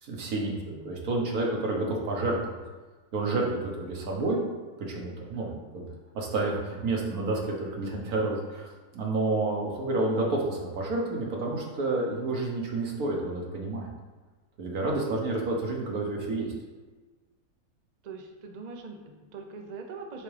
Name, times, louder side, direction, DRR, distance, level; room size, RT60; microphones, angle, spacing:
voice 1, 0.0-0.5 0.8-2.4 3.1-4.4 4.9-5.5 5.7-5.8 6.1-8.7 8.9-13.9 14.6-16.5, right 2 dB, 85° right, -1 dB, 1.6 m, -29 dB
voice 2, 0.6-1.0 3.6-3.9 5.3-6.0 18.0-20.2, right 4 dB, 50° right, 3 dB, 0.5 m, -43 dB
8.3 x 3.6 x 3.3 m, 1.3 s
omnidirectional pair, 1.5 m